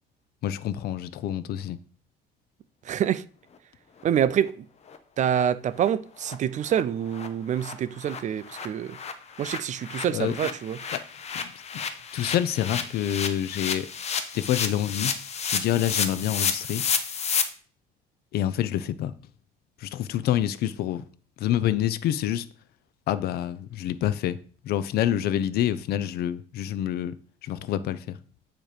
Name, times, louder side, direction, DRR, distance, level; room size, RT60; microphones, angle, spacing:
voice 1, 0.4-1.8 10.1-10.3 10.9-11.0 11.3-11.8 12.1-13.9 14.3-15.1 15.5-16.8 18.3-19.1 19.8-21.0 21.4-22.5 23.1-24.4 24.6-27.2 27.4-28.2, left 11 dB, 70° left, 0.5 m, -27 dB
voice 2, 2.8-3.2 4.0-4.7 5.2-9.0 9.4-10.8, right 9 dB, 45° right, 0.5 m, -26 dB
sound 1, 4.4-4.5 4.9-5.0 5.3-5.4 5.8-5.9 6.2-6.3 6.6-6.8 7.1-7.3 7.5-17.4, left 6 dB, 40° left, 0.8 m, -31 dB
8.9 x 3.0 x 5.0 m
cardioid pair, 110°, 17 cm